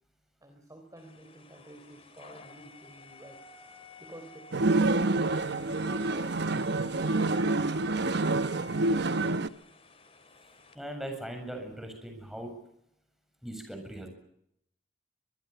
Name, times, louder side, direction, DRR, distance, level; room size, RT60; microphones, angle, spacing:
voice 1, 0.4-3.4 4.0-6.4, right 1 dB, 20° right, 5 dB, 3.6 m, -50 dB
sound 1, 1.0-10.8, left 3 dB, 30° left, 3.6 m, -53 dB
sound 2, 4.5-9.5, right 2 dB, 60° right, 1.0 m, -27 dB
voice 2, 10.7-12.5 13.4-14.1, right 1 dB, ahead, 4 dB, 7.5 m, -39 dB
24.5 x 22.5 x 6.8 m, 0.73 s
head